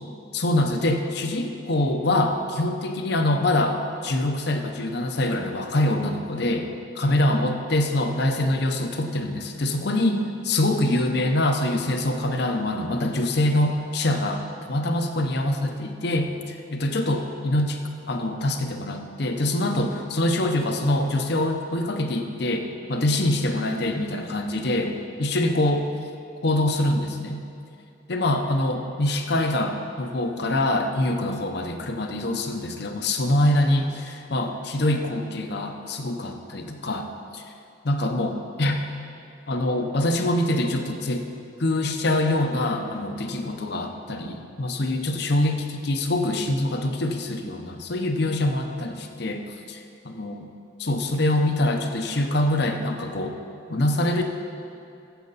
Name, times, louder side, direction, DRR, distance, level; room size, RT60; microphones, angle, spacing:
voice 1, 0.3-6.7 7.0-16.3 16.7-17.8 18.1-24.9 25.2-25.8 26.4-27.4 28.1-37.4 37.8-38.8 39.5-41.3 41.6-50.5 50.8-53.3 53.7-54.2, left 1 dB, 60° left, 5 dB, 0.8 m, -24 dB
14.0 x 7.9 x 4.1 m, 2.6 s
head